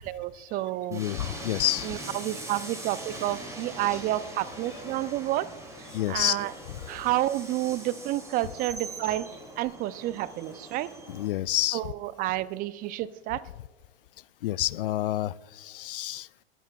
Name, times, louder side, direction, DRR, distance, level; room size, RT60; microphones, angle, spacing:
voice 1, 0.1-1.0 1.8-5.5 6.1-6.5 6.9-9.3 9.6-10.9 11.7-13.4, right 15 dB, 30° right, 18 dB, 0.5 m, -30 dB
voice 2, 0.9-1.9 4.7-4.8 5.9-6.8 11.1-11.9 14.4-16.3, left 14 dB, 60° left, 22 dB, 0.4 m, -29 dB
Train, 0.9-11.3, right 1 dB, 10° right, 5.0 m, -41 dB
22.0 x 14.5 x 2.3 m, 1.3 s
hypercardioid pair, 100°, 30 cm